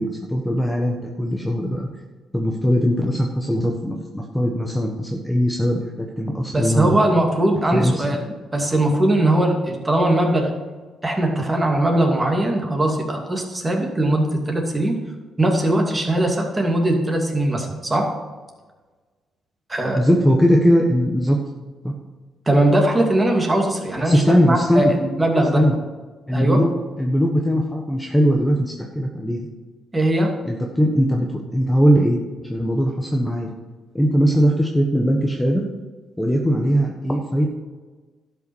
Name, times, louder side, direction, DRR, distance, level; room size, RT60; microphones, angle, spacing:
voice 1, 0.0-1.9 2.3-7.0 7.7-8.2 20.0-21.4 21.8-21.9 24.0-24.9 25.5-25.8 26.3-26.7 27.0-29.5 30.4-32.2 32.5-33.5 33.9-35.6 36.2-37.5, equal, 5° left, 0 dB, 1.3 m, -20 dB
voice 2, 6.5-8.2 8.5-10.5 11.0-14.9 15.4-18.1 19.7-20.0 22.5-25.6 26.3-26.6 29.9-30.3, right 1 dB, 20° right, 1 dB, 2.6 m, -20 dB
12.0 x 5.7 x 7.1 m, 1.3 s
cardioid pair, 90°, 0 cm